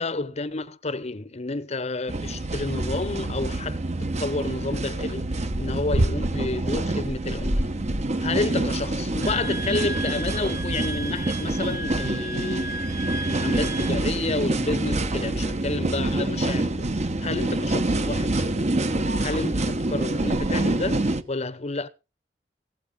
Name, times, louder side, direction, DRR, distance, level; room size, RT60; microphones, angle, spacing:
voice 1, 0.0-3.8 4.2-7.7 8.2-13.0 13.2-18.6 19.2-21.9, left 3 dB, 40° left, 0.8 m, -30 dB
sound 1, 2.1-21.2, right 2 dB, 40° right, 1.1 m, -26 dB
Wind instrument woodwind instrument, 9.2-14.0, right 1 dB, 20° right, 0.8 m, -35 dB
17.0 x 8.0 x 5.3 m
head